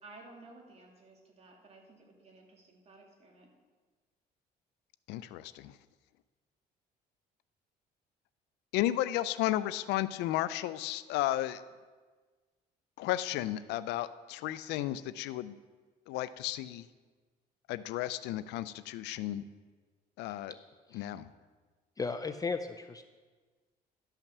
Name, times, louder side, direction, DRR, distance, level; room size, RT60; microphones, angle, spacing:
voice 1, 0.0-3.5, right 2 dB, 40° right, 1 dB, 2.4 m, -55 dB
voice 2, 5.1-5.8 8.7-11.6 13.0-15.6 16.1-16.8 17.7-19.4 20.2-20.5 20.9-21.3, left 14 dB, 90° left, 15 dB, 0.5 m, -33 dB
voice 3, 22.0-23.0, left 4 dB, 20° left, 9 dB, 0.5 m, -36 dB
12.0 x 5.8 x 6.7 m, 1.4 s
cardioid pair, 110°, 17 cm